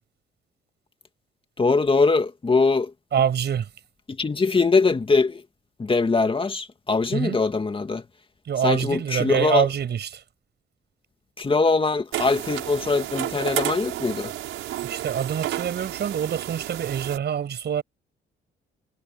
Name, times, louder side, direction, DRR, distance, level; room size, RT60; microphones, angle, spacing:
voice 1, 1.6-2.9 4.1-5.4 5.8-8.0 8.6-9.7 11.4-14.3, left 4 dB, 25° left, 2.2 m, -22 dB
voice 2, 3.1-3.7 7.1-7.4 8.4-10.2 14.8-17.8, right 8 dB, 60° right, 6.2 m, -25 dB
sound 1, 12.1-17.2, right 13 dB, 85° right, 6.0 m, -31 dB
cardioid pair, 90°, 20 cm